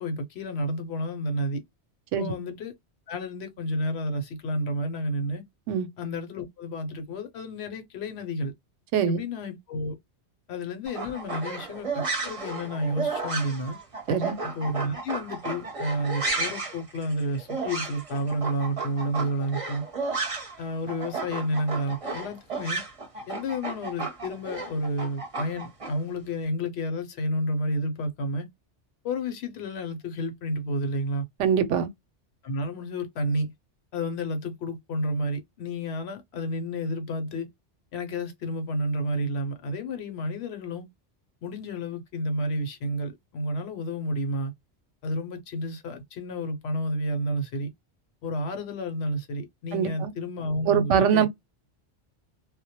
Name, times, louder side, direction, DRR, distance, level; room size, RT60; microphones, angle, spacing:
voice 1, 0.0-1.6 2.1-2.7 3.1-5.4 6.0-8.5 9.1-10.0 10.5-13.8 14.4-19.9 20.6-22.8 23.3-28.5 29.0-31.3 32.4-33.5 33.9-37.5 37.9-40.9 41.4-44.5 45.0-47.7 48.2-51.3, equal, 70° left, 0.8 m, -30 dB
sound 1, 10.9-20.6 20.9-25.9, right 3 dB, 35° right, 0.7 m, -33 dB
voice 2, 31.4-31.9 49.7-50.1 50.7-51.3, right 7 dB, 90° right, 0.9 m, -23 dB
2.1 x 2.1 x 2.7 m
omnidirectional pair, 1.2 m